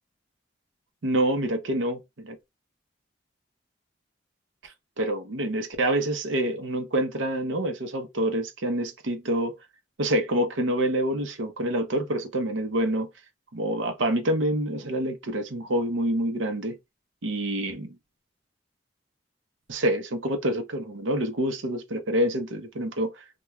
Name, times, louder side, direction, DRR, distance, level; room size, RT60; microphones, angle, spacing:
voice 1, 1.0-2.4 4.6-9.5 10.0-13.1 13.5-16.8 17.2-18.0 19.7-23.1, right 1 dB, 85° right, 0.7 m, -27 dB
2.3 x 2.2 x 3.0 m
head